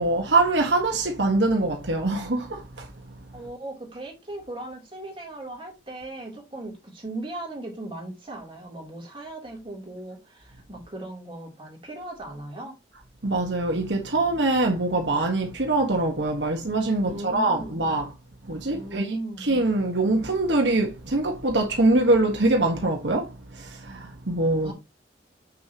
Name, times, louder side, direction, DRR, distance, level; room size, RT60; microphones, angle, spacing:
voice 1, 0.0-2.9 13.2-18.1 18.5-24.7, right 2 dB, 75° right, 1.5 m, -24 dB
voice 2, 3.3-12.8 17.0-17.8 18.7-19.5 24.6-24.7, right 1 dB, 30° right, 3.3 m, -38 dB
7.7 x 6.4 x 3.0 m
head